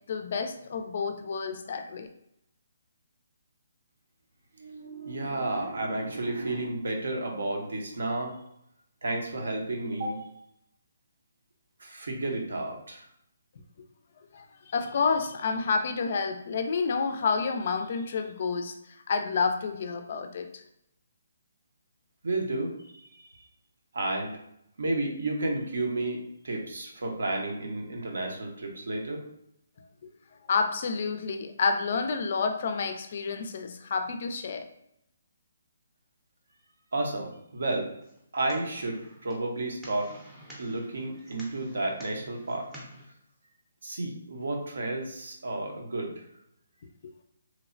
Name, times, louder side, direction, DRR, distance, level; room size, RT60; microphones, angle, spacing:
voice 1, 0.1-2.1 14.3-20.6 30.5-34.6, left 5 dB, 50° left, 7 dB, 0.3 m, -29 dB
voice 2, 4.6-8.3 9.0-10.2 11.8-13.0 22.2-23.3 23.9-24.4 24.8-29.2 36.9-37.9 38.3-40.1 40.6-42.7 43.8-46.2, right 2 dB, 75° right, 1 dB, 0.6 m, -32 dB
sound 1, 38.0-43.0, equal, 5° right, 0.5 m, -49 dB
3.0 x 2.0 x 2.4 m, 0.76 s
hypercardioid pair, 160°, 0 cm